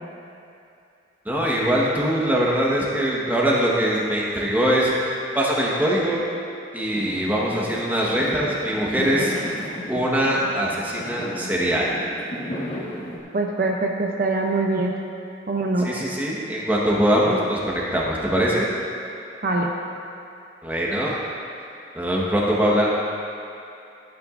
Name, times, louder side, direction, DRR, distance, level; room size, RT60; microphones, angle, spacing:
voice 1, 1.2-6.2 6.7-9.3 9.9-11.9 15.8-18.7 20.6-21.2 21.9-22.9, equal, 10° right, -5 dB, 1.2 m, -22 dB
Fireworks, 6.9-13.2, equal, 30° left, 1.4 m, -34 dB
voice 2, 13.3-14.9 15.5-15.9 19.4-19.7, right 2 dB, 45° right, 0 dB, 0.6 m, -23 dB
14.5 x 9.4 x 2.5 m, 2.6 s
head